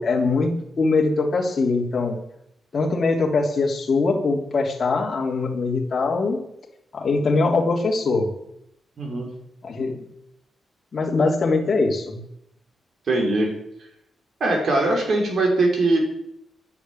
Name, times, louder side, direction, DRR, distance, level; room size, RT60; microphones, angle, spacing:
voice 1, 0.0-2.2 2.7-6.4 6.9-8.3 9.6-10.0 10.9-12.2, left 3 dB, 35° left, -1 dB, 3.3 m, -22 dB
voice 2, 9.0-9.3 13.1-13.5 14.4-16.0, right 2 dB, 50° right, 2 dB, 4.6 m, -21 dB
11.5 x 10.5 x 9.3 m, 0.78 s
wide cardioid pair, 155°, 0 cm